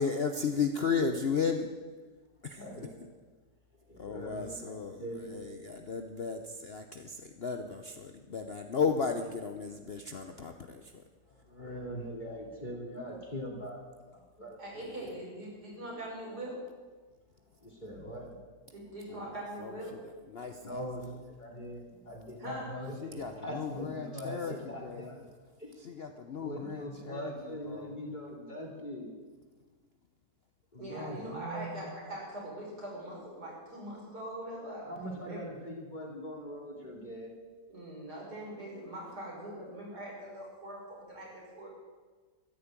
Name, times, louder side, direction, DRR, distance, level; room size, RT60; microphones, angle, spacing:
voice 1, 0.0-1.7 2.4-2.6 4.0-5.0 5.3-11.0 19.1-19.2 19.6-19.8 20.3-20.8 23.0-24.5 24.8-25.1 25.8-27.3 27.7-27.9, left 5 dB, 45° left, 6 dB, 0.9 m, -34 dB
voice 2, 2.4-3.0 3.9-5.4 11.3-14.6 17.6-18.3 20.6-25.3 25.6-25.7 26.4-29.1 30.7-31.9 34.8-37.4, equal, 25° left, -1 dB, 3.0 m, -42 dB
voice 3, 14.6-16.6 18.7-19.9 22.4-22.7 30.8-34.9 35.3-35.4 37.7-40.8 41.1-41.7, right 1 dB, 70° right, -4 dB, 6.2 m, -42 dB
14.0 x 11.0 x 8.9 m, 1.4 s
omnidirectional pair, 1.8 m